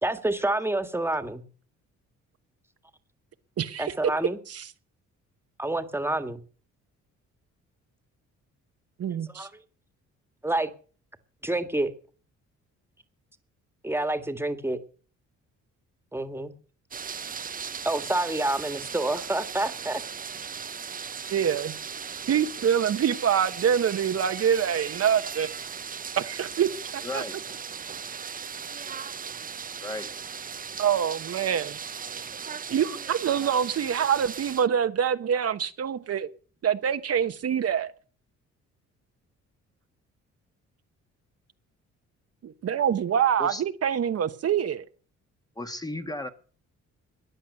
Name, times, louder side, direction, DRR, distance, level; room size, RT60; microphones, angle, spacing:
voice 1, 0.0-1.4 3.8-4.4 5.6-6.4 9.3-9.5 10.4-10.7 11.4-11.9 13.8-14.8 16.1-16.5 17.8-20.0, right 2 dB, 10° right, 1.7 m, -28 dB
voice 2, 3.6-3.9 4.5-4.7 9.0-9.5 21.3-21.8 22.3-25.5 26.2-27.2 30.8-31.8 32.7-36.3 36.6-37.9 42.4-44.8, right 8 dB, 55° right, 1.0 m, -25 dB
sound 1, 16.9-34.7, right 6 dB, 30° right, 0.6 m, -37 dB
voice 3, 27.0-27.4 29.8-30.1 43.4-43.6 45.6-46.3, left 1 dB, 10° left, 1.4 m, -34 dB
14.5 x 10.0 x 6.6 m
cardioid pair, 90°, 30 cm